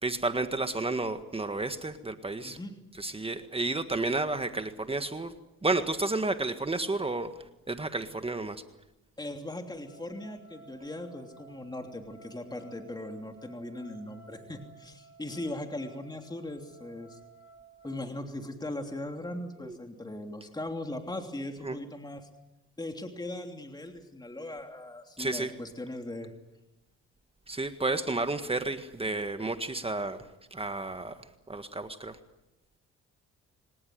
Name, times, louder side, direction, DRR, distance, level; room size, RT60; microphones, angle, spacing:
voice 1, 0.0-2.6 3.0-5.3 5.6-7.3 7.7-8.6 19.6-19.8 21.6-21.8 25.2-25.5 27.5-30.2 30.5-31.2 31.5-32.2, right 2 dB, 20° right, 9 dB, 1.7 m, -31 dB
voice 2, 2.4-2.7 9.2-17.2 17.8-22.3 22.8-26.3, left 1 dB, 15° left, 4 dB, 3.1 m, -39 dB
sound 1, 9.9-18.1, right 5 dB, 45° left, 5.2 m, -55 dB
24.5 x 19.0 x 9.4 m, 0.95 s
cardioid pair, 85°, 30 cm